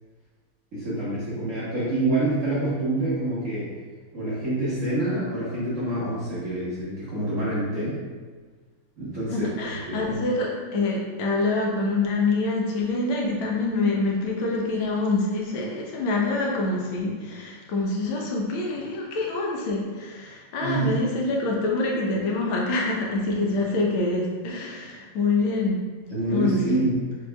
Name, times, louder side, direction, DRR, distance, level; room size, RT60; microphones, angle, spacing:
voice 1, 0.7-3.7 4.1-8.0 9.0-9.5 9.9-10.1 20.6-20.9 26.1-27.0, right 2 dB, 45° right, -11 dB, 1.3 m, -26 dB
voice 2, 9.3-25.8 26.3-26.8, left 2 dB, 75° left, -2 dB, 1.6 m, -26 dB
6.8 x 3.3 x 2.3 m, 1.4 s
omnidirectional pair, 2.3 m